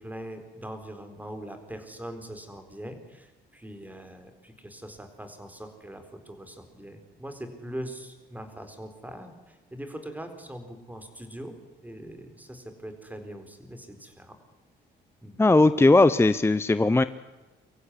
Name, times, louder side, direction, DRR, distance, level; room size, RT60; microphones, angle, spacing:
voice 1, 0.0-11.6 11.8-14.4 15.2-15.4, right 1 dB, 10° right, 8 dB, 4.2 m, -41 dB
voice 2, 15.4-17.0, left 2 dB, 10° left, 14 dB, 0.7 m, -18 dB
24.5 x 15.0 x 9.8 m, 1.2 s
cardioid pair, 90°, 20 cm